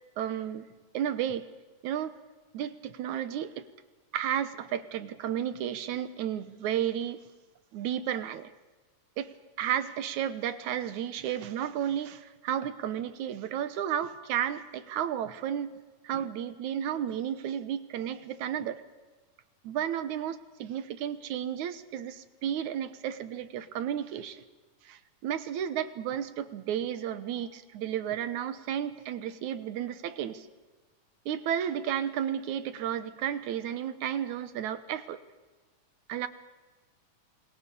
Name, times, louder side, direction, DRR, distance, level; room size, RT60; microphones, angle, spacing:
voice 1, 0.2-0.7 0.9-1.5 1.8-2.2 2.5-3.7 4.1-7.2 7.7-8.5 9.2-15.7 16.0-18.8 19.6-24.4 24.8-30.5 31.3-35.2 36.1-36.3, right 10 dB, 75° right, 12 dB, 2.5 m, -32 dB
28.0 x 21.5 x 6.9 m, 1.3 s
omnidirectional pair, 3.5 m